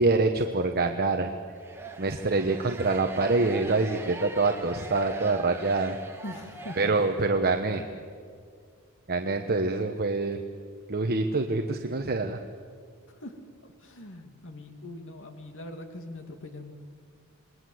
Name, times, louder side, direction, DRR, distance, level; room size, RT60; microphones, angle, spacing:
voice 1, 0.0-1.3 2.0-6.0 6.8-7.9 9.1-10.4 10.9-12.4, right 3 dB, 45° right, 5 dB, 1.1 m, -25 dB
sound 1, 1.6-7.5, right 2 dB, 10° right, 2.0 m, -42 dB
voice 2, 6.2-6.8 13.1-13.4 13.6-16.7, left 1 dB, 60° left, 5 dB, 2.3 m, -42 dB
28.0 x 20.5 x 7.9 m, 2.1 s
head